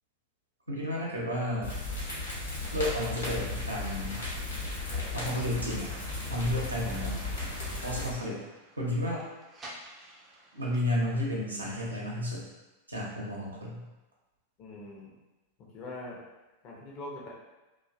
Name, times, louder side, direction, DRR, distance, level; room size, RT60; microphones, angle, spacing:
voice 1, 0.7-1.7 2.7-4.2 5.1-5.9 6.3-7.1 7.8-8.4 8.8-9.2 10.5-12.4 12.9-13.8, left 1 dB, 80° right, -4 dB, 0.6 m, -32 dB
sound 1, 1.6-8.1, left 2 dB, 70° left, 1.0 m, -35 dB
sound 2, 5.6-10.8, right 1 dB, 20° right, 0.5 m, -51 dB
voice 2, 14.6-15.1 15.6-16.2 16.6-17.3, left 2 dB, 40° left, -3 dB, 0.6 m, -42 dB
2.5 x 2.2 x 2.4 m, 1.1 s
figure-of-eight pair, 90°, 0 cm